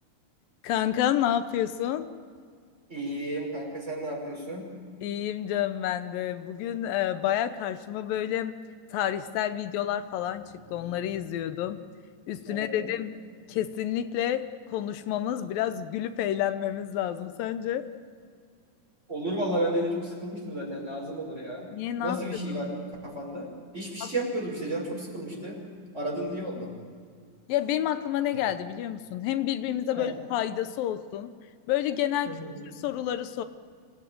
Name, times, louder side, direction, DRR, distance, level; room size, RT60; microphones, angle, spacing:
voice 1, 0.6-2.1 5.0-8.6 8.9-11.8 12.3-13.2 13.5-17.9 21.7-22.2 22.5-22.6 24.0-24.1 27.5-31.3 31.7-32.4 32.8-33.4, left 11 dB, 85° left, 10 dB, 2.6 m, -29 dB
voice 2, 2.9-4.7 12.5-12.9 19.1-21.7 22.0-22.8 23.0-25.6 25.9-26.7 29.9-30.1 32.3-32.6, right 1 dB, 20° right, -1 dB, 5.7 m, -32 dB
26.5 x 17.5 x 9.2 m, 2.1 s
omnidirectional pair, 4.0 m